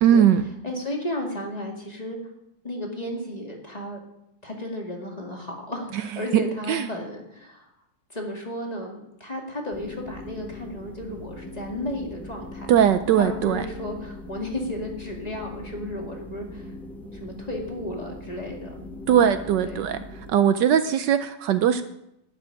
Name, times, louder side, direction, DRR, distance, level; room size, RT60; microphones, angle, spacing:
voice 1, 0.0-0.4 5.9-6.0 6.7-6.9 12.7-13.6 19.1-20.0 20.3-21.8, right 9 dB, 70° right, 11 dB, 1.2 m, -20 dB
voice 2, 0.6-2.2 2.6-4.0 4.4-7.7 8.1-12.7 13.2-16.7 17.1-19.2 19.6-20.0, left 1 dB, 20° left, 0 dB, 2.2 m, -34 dB
sound 1, 9.7-20.3, left 1 dB, ahead, 1.1 m, -41 dB
12.0 x 6.2 x 9.6 m, 0.81 s
omnidirectional pair, 2.0 m